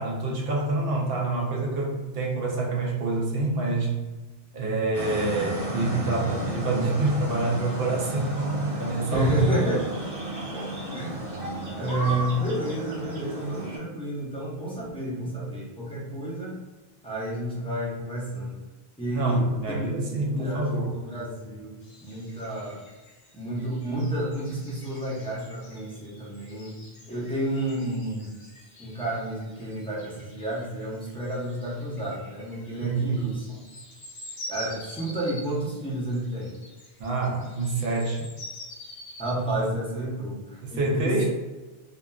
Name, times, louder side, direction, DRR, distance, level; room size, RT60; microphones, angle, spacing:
voice 1, 0.0-4.0 4.5-9.3 19.1-21.0 32.8-33.4 37.0-38.3 40.6-41.3, right 2 dB, 70° right, -1 dB, 0.8 m, -27 dB
sound 1, 4.9-13.8, right 1 dB, 35° right, 1.0 m, -33 dB
voice 2, 9.1-9.8 10.5-10.6 10.9-11.2 11.8-16.6 17.0-18.6 19.0-19.8 20.2-22.8 23.3-26.8 27.1-28.3 28.8-33.6 34.5-36.6 39.2-41.1, right 1 dB, 5° left, -7 dB, 0.6 m, -30 dB
sound 2, 21.8-39.7, left 1 dB, 60° left, 0.7 m, -46 dB
2.8 x 2.4 x 2.2 m, 1.2 s
omnidirectional pair, 1.0 m